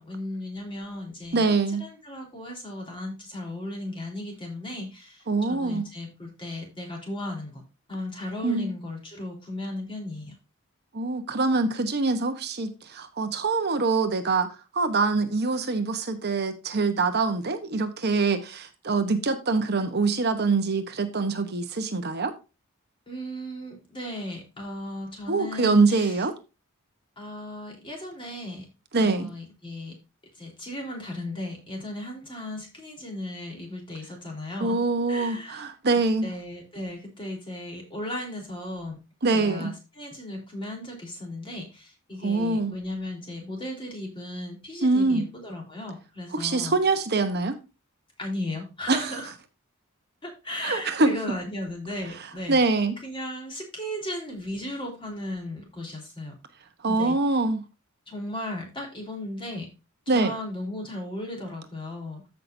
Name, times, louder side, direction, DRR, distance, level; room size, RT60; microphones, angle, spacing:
voice 1, 0.0-7.6 7.9-10.3 23.1-26.2 27.2-28.7 29.0-30.0 30.4-34.8 35.1-35.7 36.2-39.0 39.3-46.8 48.2-49.3 50.2-52.6 53.0-56.3 56.9-57.2 58.1-59.7 60.1-62.2, left 1 dB, 25° left, 3.8 m, -36 dB
voice 2, 1.3-1.9 5.3-5.9 8.4-8.7 10.9-22.3 25.3-26.4 28.9-29.3 34.6-36.3 39.2-39.7 42.2-42.7 44.8-45.2 46.3-47.6 48.9-49.2 50.5-51.2 52.1-52.9 56.8-57.6 60.1-60.3, right 3 dB, 50° right, 1.0 m, -24 dB
14.0 x 5.9 x 2.7 m
head